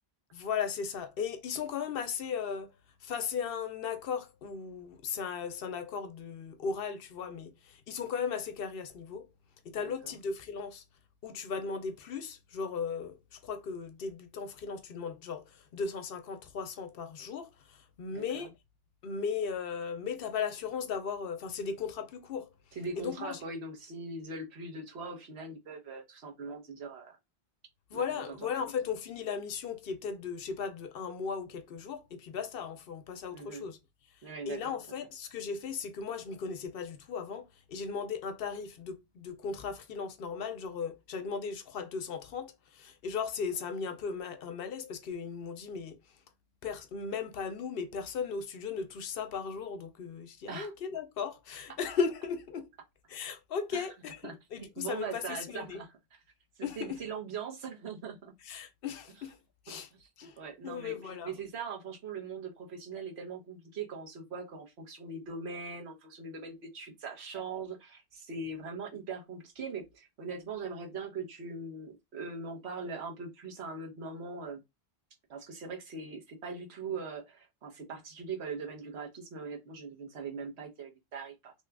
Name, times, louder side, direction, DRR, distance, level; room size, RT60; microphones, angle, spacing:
voice 1, 0.3-9.3 9.6-10.8 11.2-18.5 19.0-22.5 23.0-23.4 27.9-33.8 34.1-46.2 46.6-52.7 53.1-55.8 56.6-57.0 58.4-59.4 59.6-59.9 60.2-61.3, left 6 dB, 65° left, 0.7 m, -37 dB
voice 2, 18.1-18.5 22.7-27.2 27.9-28.5 33.3-33.7 34.2-34.7 50.5-50.7 53.7-53.8 54.2-54.3 54.8-55.9 56.6-58.3 59.7-60.1 60.4-61.0 61.2-74.6 75.3-81.5, right 4 dB, 80° right, 1.2 m, -41 dB
2.9 x 2.3 x 3.3 m
omnidirectional pair, 1.1 m